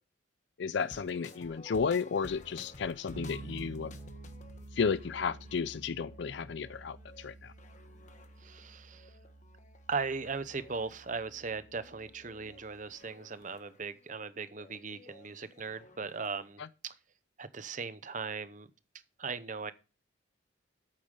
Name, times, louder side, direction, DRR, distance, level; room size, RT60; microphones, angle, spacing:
voice 1, 0.6-3.9 4.7-7.5 16.6-16.7, left 5 dB, 60° left, 0.4 m, -33 dB
sound 1, 0.8-16.5, left 2 dB, 35° left, 1.2 m, -55 dB
Bass guitar, 3.1-12.8, right 2 dB, 75° right, 1.3 m, -50 dB
voice 2, 8.4-9.1 9.9-16.9 17.4-18.7 19.2-19.7, right 4 dB, 40° right, 0.7 m, -38 dB
8.8 x 8.4 x 5.3 m
head